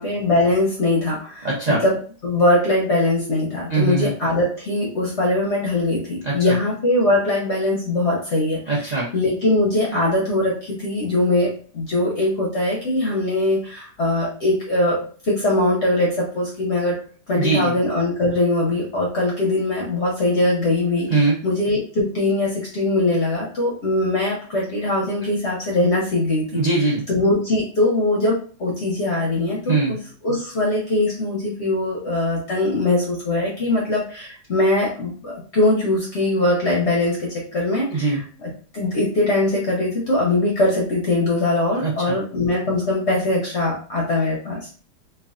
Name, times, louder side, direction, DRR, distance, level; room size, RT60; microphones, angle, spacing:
voice 1, 0.0-26.5 27.1-30.0 30.2-44.7, left 2 dB, 60° left, -3 dB, 0.7 m, -21 dB
voice 2, 1.4-1.8 3.7-4.1 6.2-6.5 8.7-9.1 17.3-17.7 21.1-21.4 26.5-27.0 29.7-29.9 37.9-38.2 41.8-42.1, right 3 dB, 65° right, -5 dB, 0.4 m, -21 dB
3.2 x 2.3 x 2.5 m, 0.41 s
omnidirectional pair, 2.0 m